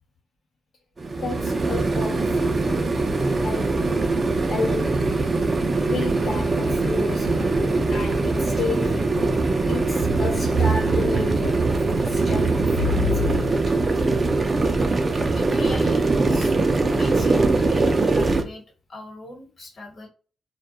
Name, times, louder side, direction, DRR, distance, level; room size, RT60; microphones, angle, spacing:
sound 1, 1.0-18.4, right 3 dB, 30° right, 0.4 m, -22 dB
voice 1, 1.2-2.8 3.4-3.8 4.5-5.0 5.8-13.6, left 3 dB, 65° left, 0.6 m, -32 dB
sound 2, 10.0-14.6, right 3 dB, 65° right, 0.7 m, -27 dB
voice 2, 15.3-18.6 18.9-20.1, left 2 dB, 45° left, 1.1 m, -40 dB
2.3 x 2.2 x 2.7 m
cardioid pair, 110°, 0 cm